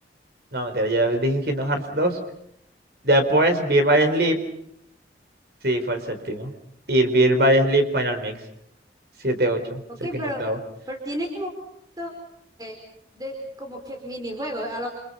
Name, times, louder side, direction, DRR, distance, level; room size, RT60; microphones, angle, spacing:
voice 1, 0.5-2.2 3.0-4.4 5.6-6.5 6.9-8.4 9.2-9.8 10.1-10.6, right 1 dB, 60° right, 7 dB, 4.4 m, -21 dB
voice 2, 9.9-10.4 10.9-11.5 12.0-12.1 12.6-12.7 13.1-14.9, equal, 20° right, 2 dB, 4.6 m, -32 dB
29.5 x 28.5 x 5.6 m, 0.72 s
head